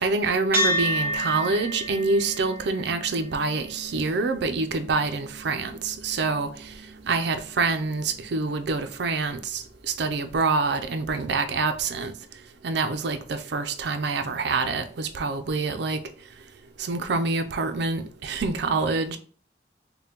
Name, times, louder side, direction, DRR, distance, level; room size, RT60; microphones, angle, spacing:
voice 1, 0.0-6.8 7.1-12.1 12.6-16.0 16.8-19.2, right 4 dB, 65° right, 0.5 m, -26 dB
sound 1, 0.5-9.2, equal, 15° right, 0.9 m, -33 dB
5.3 x 2.2 x 2.9 m
head